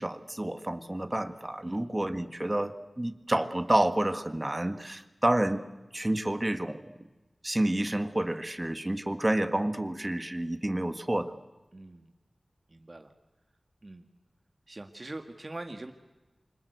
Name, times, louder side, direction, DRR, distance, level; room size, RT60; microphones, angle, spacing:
voice 1, 0.0-5.6 5.9-6.8 7.4-11.3, right 1 dB, 25° right, 10 dB, 1.7 m, -29 dB
voice 2, 11.7-12.1 12.7-13.1 13.8-14.0 14.7-15.9, right 2 dB, 40° right, 6 dB, 1.7 m, -43 dB
28.0 x 25.5 x 8.2 m, 1.1 s
wide cardioid pair, 70°, 0 cm